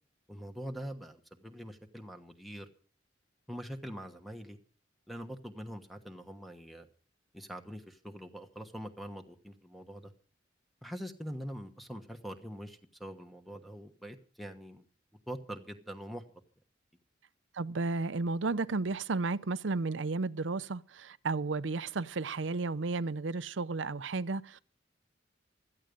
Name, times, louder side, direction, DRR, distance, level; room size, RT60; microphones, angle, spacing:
voice 1, 0.3-2.7 3.5-4.6 5.1-6.9 7.3-10.1 10.8-14.8 15.3-16.2, equal, ahead, 1.2 m, -43 dB
voice 2, 17.5-24.6, right 3 dB, 75° right, 0.6 m, -33 dB
16.5 x 13.0 x 5.2 m
head